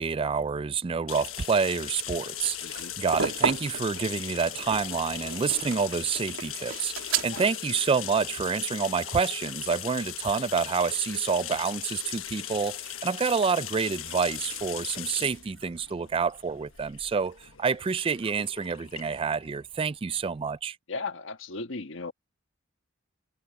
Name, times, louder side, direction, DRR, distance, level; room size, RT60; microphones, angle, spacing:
voice 1, 0.0-20.8, right 5 dB, 25° right, 0.3 m, -28 dB
sound 1, 1.1-20.5, left 11 dB, 90° left, 1.3 m, -39 dB
sound 2, 2.1-7.5, right 6 dB, 80° right, 3.1 m, -33 dB
voice 2, 2.6-2.9 7.2-7.4 20.9-22.1, left 3 dB, 65° left, 1.4 m, -36 dB
head